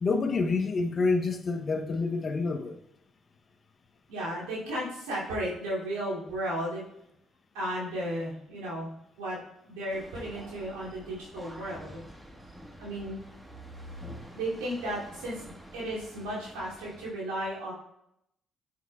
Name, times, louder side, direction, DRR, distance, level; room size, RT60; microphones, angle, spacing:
voice 1, 0.0-2.8, left 4 dB, 45° left, 6 dB, 0.8 m, -28 dB
voice 2, 4.1-6.8 7.5-8.9 9.2-9.4 9.7-12.0 12.8-13.2 14.3-15.4 15.7-17.7, right 1 dB, 85° right, -7 dB, 2.7 m, -34 dB
sound 1, 9.9-17.1, equal, 10° right, 1.4 m, -47 dB
7.9 x 6.5 x 2.3 m, 0.79 s
hypercardioid pair, 55°, 0 cm